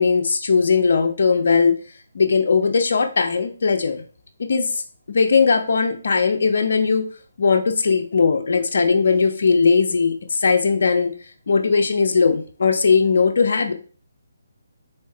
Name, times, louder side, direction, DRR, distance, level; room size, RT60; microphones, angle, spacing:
voice 1, 0.0-1.7 2.1-4.0 4.5-4.7 5.1-7.0 7.4-11.1 11.5-13.7, left 5 dB, 65° left, 5 dB, 0.6 m, -18 dB
3.6 x 3.5 x 2.7 m, 0.38 s
figure-of-eight pair, 145°, 0 cm